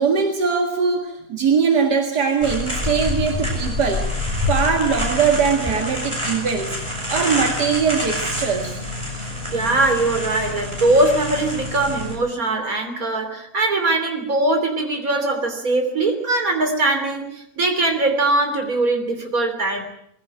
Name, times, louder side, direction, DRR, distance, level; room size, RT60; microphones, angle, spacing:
voice 1, 0.0-4.1 4.5-6.8 7.1-8.7, right 6 dB, 80° right, 4 dB, 2.5 m, -21 dB
sound 1, 2.4-12.2, left 1 dB, 15° right, 6.1 m, -27 dB
voice 2, 9.5-19.8, right 2 dB, 60° right, 5 dB, 3.7 m, -21 dB
21.5 x 16.0 x 8.8 m, 0.74 s
omnidirectional pair, 1.7 m